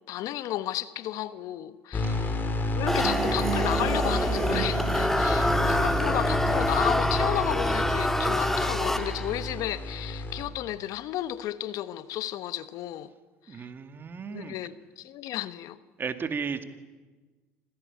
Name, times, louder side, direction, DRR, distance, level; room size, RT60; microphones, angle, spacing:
voice 1, 0.1-2.4 2.7-13.1 13.5-13.7 14.3-15.8, left 13 dB, 60° left, 1.1 m, -33 dB
sound 1, 1.9-10.4, left 1 dB, 30° left, 4.4 m, -30 dB
sound 2, 2.8-5.7, right 15 dB, 75° right, 1.0 m, -35 dB
sound 3, 2.9-9.5, left 1 dB, 5° left, 1.9 m, -27 dB
voice 2, 13.5-14.5 16.0-16.6, right 6 dB, 35° right, 2.2 m, -35 dB
26.0 x 17.0 x 9.8 m
hypercardioid pair, 80°, 7 cm